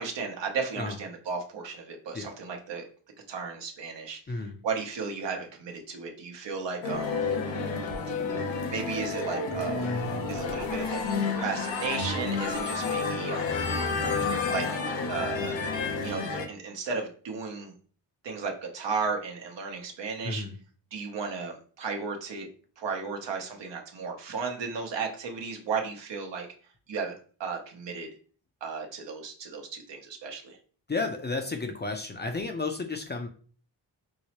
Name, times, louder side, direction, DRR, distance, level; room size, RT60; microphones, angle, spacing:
voice 1, 0.0-2.9 3.3-4.4 4.6-7.3 8.7-9.9 10.3-13.7 14.5-14.6 15.1-15.6 16.0-17.7 18.2-20.4 20.9-22.5 22.8-26.5 26.9-27.1 27.4-28.1 28.6-30.6, right 5 dB, 75° right, 2 dB, 0.9 m, -34 dB
sound 1, 6.8-16.5, left 4 dB, 85° left, 0.8 m, -30 dB
voice 2, 30.9-33.3, left 3 dB, 25° left, 5 dB, 0.5 m, -32 dB
4.6 x 2.0 x 2.9 m, 0.42 s
cardioid pair, 75°, 44 cm